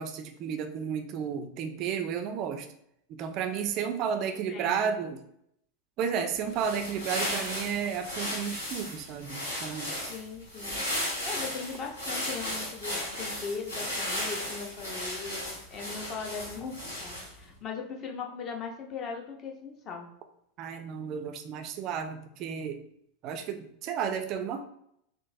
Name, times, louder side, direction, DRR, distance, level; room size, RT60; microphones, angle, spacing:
voice 1, 0.0-2.7 3.1-5.2 6.0-10.0 20.6-22.8 23.2-24.7, right 7 dB, 40° right, 8 dB, 0.3 m, -32 dB
voice 2, 4.3-5.0 10.1-10.8 11.2-20.1, left 5 dB, 35° left, 2 dB, 0.6 m, -39 dB
sound 1, 6.4-17.4, left 1 dB, 80° left, 1.3 m, -35 dB
3.8 x 2.4 x 2.6 m, 0.72 s
figure-of-eight pair, 85°, 0 cm